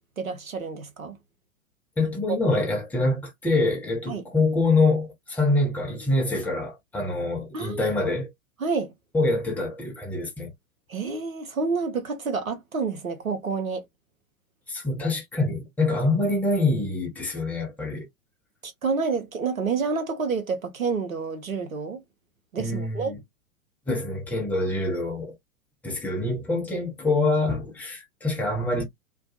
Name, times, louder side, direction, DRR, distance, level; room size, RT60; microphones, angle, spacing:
voice 1, 0.2-1.2 2.0-2.4 4.1-4.2 7.5-7.9 8.6-8.9 10.9-13.8 18.6-22.0 22.5-23.1, right 4 dB, 85° right, 0.8 m, -29 dB
voice 2, 2.0-8.3 9.1-10.5 14.7-18.1 22.6-23.2 23.9-25.4 25.8-28.8, left 2 dB, 5° left, 0.6 m, -25 dB
2.4 x 2.3 x 2.6 m
figure-of-eight pair, 100°, 40 cm